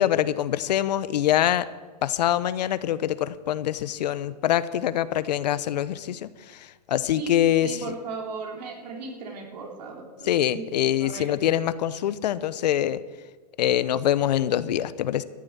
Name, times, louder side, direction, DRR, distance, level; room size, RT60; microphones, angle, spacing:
voice 1, 0.0-1.7 2.0-7.9 10.3-13.0 13.6-15.2, left 11 dB, 75° left, 16 dB, 0.8 m, -24 dB
voice 2, 7.1-10.7 11.0-11.5, right 4 dB, 80° right, 1 dB, 3.7 m, -37 dB
13.5 x 7.8 x 9.0 m, 1.3 s
hypercardioid pair, 140°, 21 cm